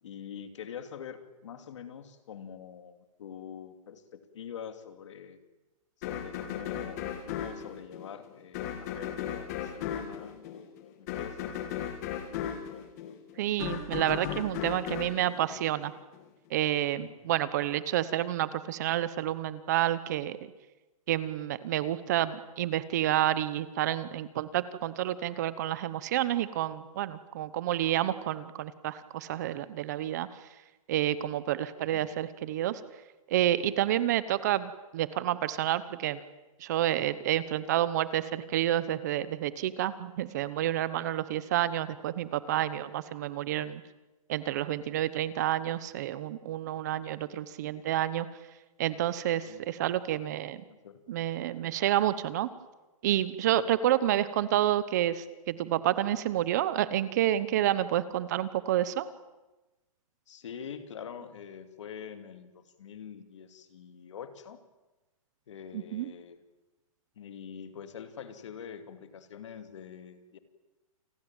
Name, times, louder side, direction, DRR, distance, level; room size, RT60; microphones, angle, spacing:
voice 1, 0.0-5.4 6.0-11.9 17.0-17.2 31.9-32.1 49.5-49.6 50.7-51.2 53.5-53.6 60.3-64.6 65.5-66.4 67.2-70.4, left 8 dB, 55° left, 10 dB, 2.7 m, -45 dB
sound 1, 6.0-16.2, left 9 dB, 30° left, 2.5 m, -36 dB
voice 2, 13.4-15.9 16.5-20.5 21.1-30.5 30.9-32.8 33.3-36.2 36.6-43.8 44.3-48.3 48.8-50.6 51.1-52.5 53.0-59.1 65.7-66.1, right 12 dB, 30° right, 16 dB, 1.0 m, -29 dB
29.0 x 20.5 x 8.9 m, 1.1 s
hypercardioid pair, 175°, 18 cm